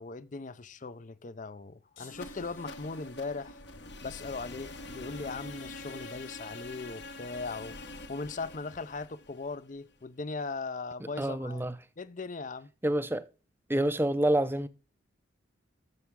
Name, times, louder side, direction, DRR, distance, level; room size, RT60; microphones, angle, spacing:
voice 1, 0.0-3.6 4.0-7.8 8.1-11.7 12.0-12.7, left 3 dB, 40° left, 0.6 m, -39 dB
sound 1, 2.0-3.4, left 5 dB, 75° left, 6.9 m, -56 dB
sound 2, 2.1-10.0, left 2 dB, 55° left, 1.1 m, -45 dB
voice 2, 11.2-11.7 12.8-13.2 13.7-14.7, right 1 dB, 10° right, 0.5 m, -27 dB
12.5 x 7.2 x 3.7 m
head